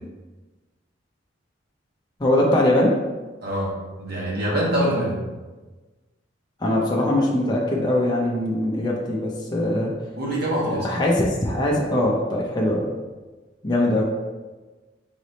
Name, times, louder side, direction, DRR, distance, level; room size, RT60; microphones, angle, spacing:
voice 1, 2.2-2.9 6.6-9.9 10.8-12.9 13.6-14.0, left 1 dB, 20° left, -3 dB, 0.5 m, -21 dB
voice 2, 3.4-3.7 4.0-5.1 10.2-10.9, right 1 dB, 55° right, -5 dB, 1.5 m, -24 dB
4.1 x 3.3 x 4.0 m, 1.2 s
head